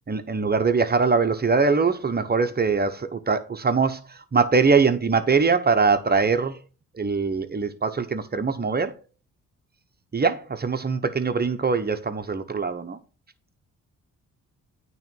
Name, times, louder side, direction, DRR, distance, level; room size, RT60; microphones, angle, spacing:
voice 1, 0.1-4.0 4.3-6.6 7.0-9.0 10.1-13.0, right 4 dB, 25° right, 1.0 m, -22 dB
9.0 x 3.2 x 5.3 m
supercardioid pair, 50°, 36 cm